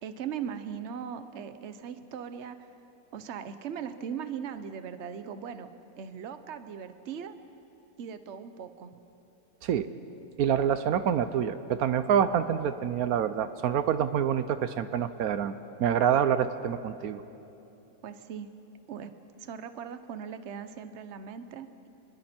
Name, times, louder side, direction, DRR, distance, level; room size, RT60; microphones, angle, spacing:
voice 1, 0.0-2.7 3.1-5.7 6.0-7.3 8.0-9.0 18.0-18.5 18.9-19.1 19.4-21.9, right 7 dB, 55° right, 10 dB, 1.1 m, -39 dB
voice 2, 10.4-15.5 15.8-17.2, right 8 dB, 80° right, 11 dB, 1.2 m, -26 dB
28.0 x 21.5 x 4.4 m, 2.9 s
omnidirectional pair, 1.5 m